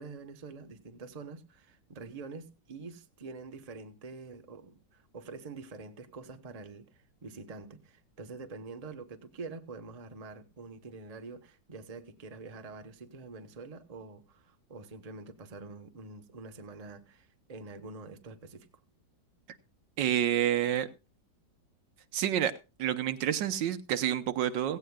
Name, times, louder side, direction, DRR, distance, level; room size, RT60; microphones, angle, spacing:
voice 1, 0.0-18.7, right 4 dB, 25° right, 0.9 m, -46 dB
voice 2, 20.0-20.9 22.1-22.5 22.8-24.8, right 10 dB, 80° right, 1.5 m, -28 dB
16.5 x 16.5 x 2.3 m
omnidirectional pair, 2.0 m